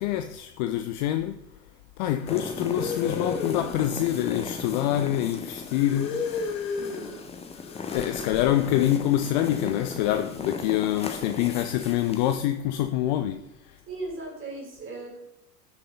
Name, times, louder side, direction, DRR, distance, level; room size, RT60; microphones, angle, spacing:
voice 1, 0.0-1.4 2.0-6.3 7.9-13.8, left 12 dB, 30° left, 0.5 m, -26 dB
sound 1, 2.2-4.9 5.7-7.2 7.6-8.9, left 5 dB, 50° left, 1.4 m, -34 dB
sound 2, 2.3-12.4, left 4 dB, 10° left, 1.1 m, -37 dB
voice 2, 6.7-7.2 13.9-15.2, right 3 dB, 25° right, 4.3 m, -37 dB
16.0 x 6.4 x 4.0 m
figure-of-eight pair, 85°, 49 cm